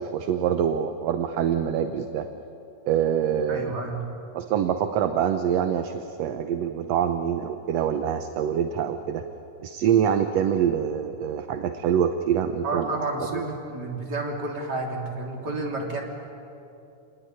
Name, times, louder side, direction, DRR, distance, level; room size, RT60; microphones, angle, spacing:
voice 1, 0.0-2.3 2.9-3.7 4.3-9.2 9.6-12.9 13.3-13.4, right 8 dB, 65° right, 7 dB, 1.8 m, -25 dB
voice 2, 3.5-4.0 12.6-16.0, right 2 dB, 30° right, 0 dB, 3.8 m, -30 dB
28.0 x 20.0 x 9.9 m, 2.8 s
omnidirectional pair, 3.6 m